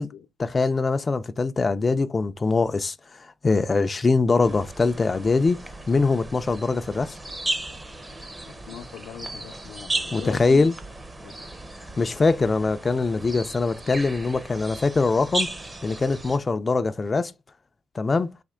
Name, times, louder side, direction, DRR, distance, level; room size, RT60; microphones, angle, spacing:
voice 1, 0.4-5.6 5.9-7.2 10.1-10.8 12.0-15.5 15.8-17.3 18.0-18.3, left 3 dB, 25° left, 0.4 m, -23 dB
sound 1, 4.4-16.4, right 2 dB, 15° right, 0.6 m, -35 dB
voice 2, 8.5-10.7 11.2-11.4, left 8 dB, 85° left, 0.6 m, -41 dB
4.2 x 2.9 x 3.6 m
cardioid pair, 140°, 0 cm